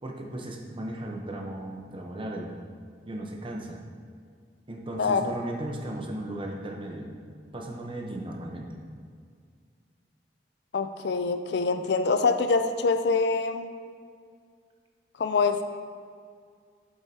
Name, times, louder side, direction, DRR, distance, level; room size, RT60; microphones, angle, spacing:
voice 1, 0.0-2.6 3.0-3.8 4.7-7.1 7.5-8.7, right 1 dB, 30° right, 0 dB, 0.9 m, -36 dB
voice 2, 4.9-5.3 10.7-13.7 15.2-15.6, left 4 dB, 70° left, 8 dB, 0.4 m, -25 dB
8.1 x 8.0 x 2.8 m, 2.1 s
head